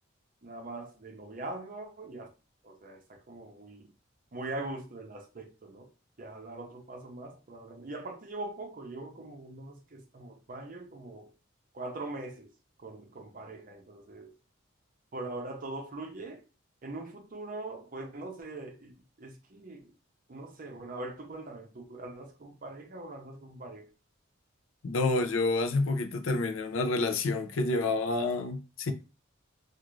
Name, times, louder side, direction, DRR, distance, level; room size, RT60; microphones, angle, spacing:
voice 1, 0.4-2.3 2.6-3.9 4.3-5.9 6.2-11.3 11.7-12.5 12.8-14.3 15.1-16.4 16.8-18.9 19.2-19.9 20.3-23.9, right 2 dB, 40° right, 0.6 m, -42 dB
voice 2, 24.8-28.9, left 3 dB, 80° left, 0.5 m, -28 dB
2.5 x 2.4 x 3.0 m
head